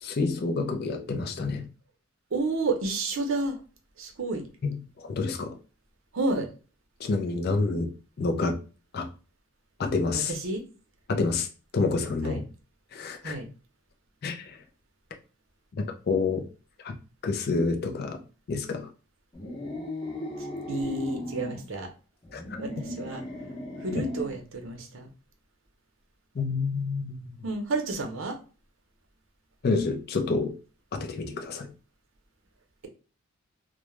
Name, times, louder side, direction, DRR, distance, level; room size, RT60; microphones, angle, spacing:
voice 1, 0.0-1.7 4.6-5.6 7.0-8.6 8.9-9.1 9.8-10.3 11.1-11.5 11.7-12.4 12.9-13.3 14.2-14.6 15.7-16.5 16.8-17.0 17.2-18.2 18.5-18.9 22.3-22.4 24.0-24.1 26.4-27.4 29.6-30.6 30.9-31.7, left 3 dB, 45° left, 4 dB, 0.4 m, -28 dB
voice 2, 2.3-3.6 4.0-4.4 6.1-6.5 10.1-10.6 12.2-12.4 13.2-13.5 20.7-21.9 22.6-23.2 23.8-25.1 27.4-28.4, right 2 dB, 65° right, 4 dB, 0.6 m, -30 dB
sound 1, 19.3-21.6 22.2-24.4, left 1 dB, 20° left, 0.7 m, -36 dB
2.2 x 2.0 x 3.0 m, 0.34 s
head